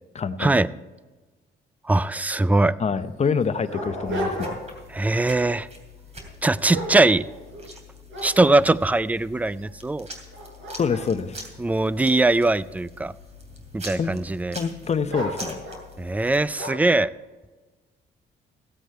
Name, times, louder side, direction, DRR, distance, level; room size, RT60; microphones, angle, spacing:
voice 1, 0.1-0.5 2.8-4.6 10.8-11.4 14.0-14.1 14.6-15.6, left 6 dB, 35° left, 11 dB, 0.7 m, -26 dB
voice 2, 1.8-2.8 4.9-5.7 6.4-7.3 8.2-10.1 11.6-13.1 13.7-14.6 16.0-17.1, right 2 dB, 10° right, 18 dB, 0.3 m, -21 dB
Dog, 2.5-2.6 3.2-4.9 5.3-5.6 6.2-7.7 8.1-9.0 9.6-9.7 10.2-12.5 13.2-13.8 15.1-15.9 16.6-16.9, equal, 80° right, 4.6 m, -34 dB
sound 1, 4.0-16.4, left 1 dB, 35° right, 2.8 m, -44 dB
15.0 x 8.3 x 4.6 m, 1.2 s
cardioid pair, 90°, 20 cm